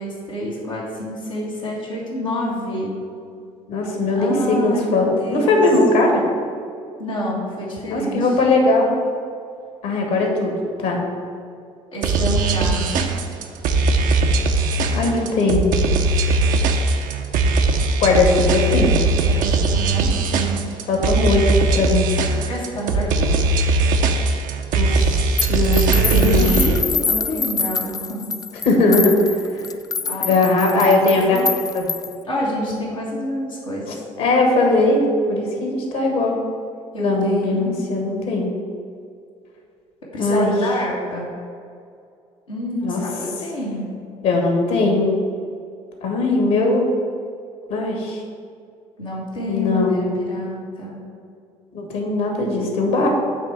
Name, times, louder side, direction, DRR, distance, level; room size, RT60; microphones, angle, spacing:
voice 1, 0.0-2.9 4.2-5.6 7.0-8.3 11.9-13.1 19.2-20.7 22.5-23.3 25.9-28.3 30.0-31.5 32.2-33.8 36.9-37.8 40.1-41.3 42.5-43.9 49.0-51.0, equal, 90° left, -8 dB, 1.8 m, -28 dB
voice 2, 3.7-6.2 7.9-8.9 9.8-10.5 10.8-11.0 14.9-15.7 18.0-19.0 20.9-21.5 21.7-22.1 24.7-26.6 28.7-29.6 30.2-31.4 31.7-31.9 33.9-36.4 37.0-38.5 40.2-40.5 42.8-43.0 44.2-45.1 46.0-46.9 47.7-48.2 49.5-50.1 51.7-53.1, left 2 dB, 65° left, 1 dB, 1.6 m, -19 dB
sound 1, 12.0-26.8, right 3 dB, 60° right, 0.7 m, -19 dB
sound 2, 25.4-32.2, left 5 dB, 25° left, 0.3 m, -26 dB
8.2 x 3.3 x 6.4 m, 2.4 s
figure-of-eight pair, 55°, 16 cm